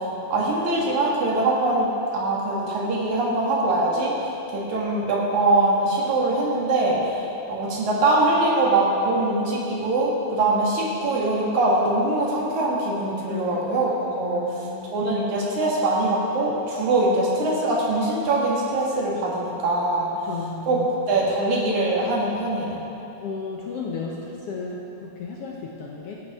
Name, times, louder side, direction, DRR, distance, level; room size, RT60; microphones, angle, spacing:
voice 1, 0.0-4.1 4.5-7.1 7.5-14.4 14.9-20.1 20.7-20.8 21.1-22.8, right 2 dB, 70° right, -4 dB, 3.1 m, -23 dB
voice 2, 13.3-15.1 20.2-21.1 23.2-26.2, left 4 dB, 70° left, -2 dB, 1.6 m, -35 dB
16.5 x 8.8 x 3.6 m, 2.9 s
omnidirectional pair, 3.6 m